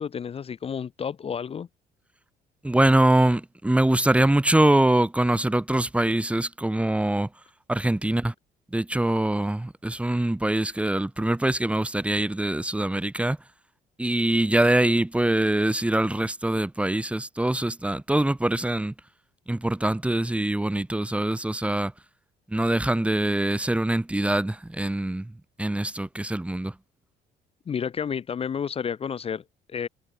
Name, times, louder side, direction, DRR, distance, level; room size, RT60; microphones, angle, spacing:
voice 1, 0.0-1.7 27.7-29.9, left 7 dB, 35° left, 1.0 m, -31 dB
voice 2, 2.6-7.3 7.7-8.3 8.7-13.4 14.0-18.9 19.5-21.9 22.5-25.3 25.6-26.7, right 1 dB, 5° right, 1.6 m, -23 dB
cardioid pair, 110°, 17 cm